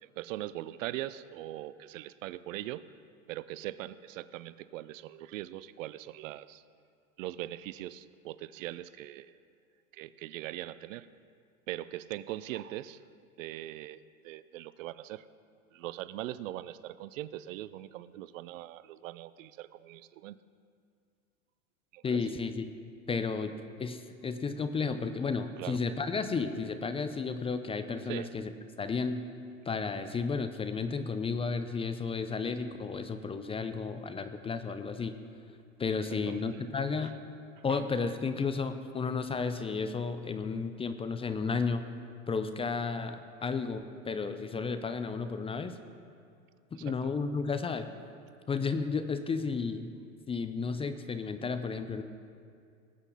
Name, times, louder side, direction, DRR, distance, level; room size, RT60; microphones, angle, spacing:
voice 1, 0.0-2.8 3.3-6.6 7.2-9.4 9.9-11.1 11.7-13.0 13.4-15.3 15.7-20.4 21.9-22.2 25.6-25.8 28.1-28.3 36.1-36.6 37.7-37.8 46.7-46.9, right 14 dB, 65° right, 17 dB, 0.6 m, -41 dB
voice 2, 22.0-22.6 23.1-23.5 23.8-28.5 28.8-29.2 29.7-35.1 35.8-37.1 37.6-41.9 42.3-45.7 46.7-47.9 48.5-49.9 50.3-52.0, left 4 dB, 15° left, 9 dB, 0.5 m, -33 dB
19.5 x 8.1 x 4.0 m, 2.3 s
hypercardioid pair, 95°, 42 cm